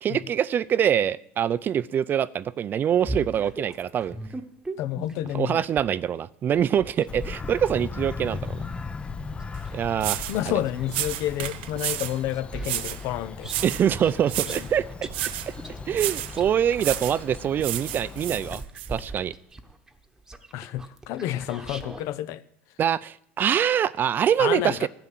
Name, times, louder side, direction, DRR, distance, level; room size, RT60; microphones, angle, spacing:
voice 1, 0.0-4.2 5.3-8.7 9.7-10.3 13.6-15.1 15.5-15.6 15.9-18.6 18.9-19.3 22.8-24.9, right 9 dB, 35° right, 0.5 m, -24 dB
sound 1, 3.0-6.0 6.5-10.9 11.4-22.1, right 2 dB, 10° right, 1.2 m, -40 dB
voice 2, 4.8-5.6 10.3-13.5 14.5-14.7 20.5-22.4 24.4-24.9, left 13 dB, 60° left, 0.8 m, -30 dB
Bird vocalization bird call bird song, 7.1-18.6, left 5 dB, 20° left, 0.6 m, -38 dB
sound 2, 9.5-9.6 10.0-10.4 10.9-12.2 12.6-13.0 13.4-13.9 14.3-14.7 15.1-15.5 15.9-16.4 16.8-17.2 17.6-18.9, right 15 dB, 80° right, 0.6 m, -31 dB
12.0 x 5.8 x 9.2 m
supercardioid pair, 100°, 6 cm